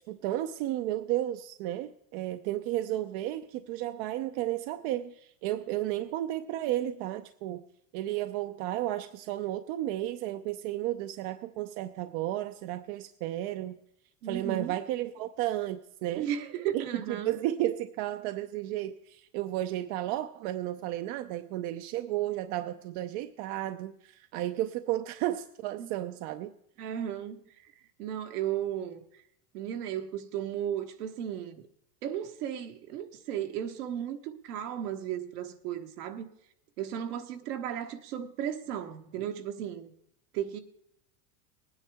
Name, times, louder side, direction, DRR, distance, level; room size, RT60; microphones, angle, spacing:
voice 1, 0.1-7.6 7.9-13.8 14.2-16.3 16.7-26.5, right 14 dB, 55° right, 0.7 m, -33 dB
voice 2, 14.2-14.8 16.1-17.3 25.8-25.9 26.8-27.4 28.0-29.0 29.5-31.6 32.0-36.3 36.8-39.9 40.3-40.6, right 10 dB, 75° right, 1.4 m, -35 dB
19.0 x 9.6 x 3.5 m
hypercardioid pair, 110°, 46 cm